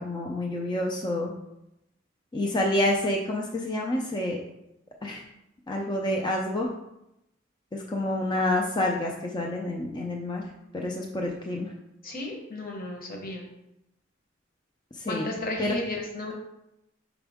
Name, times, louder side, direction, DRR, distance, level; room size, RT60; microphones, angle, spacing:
voice 1, 0.0-1.3 2.3-4.4 5.0-5.2 5.7-6.7 7.7-10.5 10.7-11.7 15.0-15.3 15.6-15.7, left 1 dB, 25° left, 0 dB, 0.5 m, -28 dB
voice 2, 12.0-13.4 15.1-16.3, left 2 dB, 50° left, 1 dB, 1.2 m, -34 dB
5.9 x 4.4 x 3.5 m, 0.86 s
head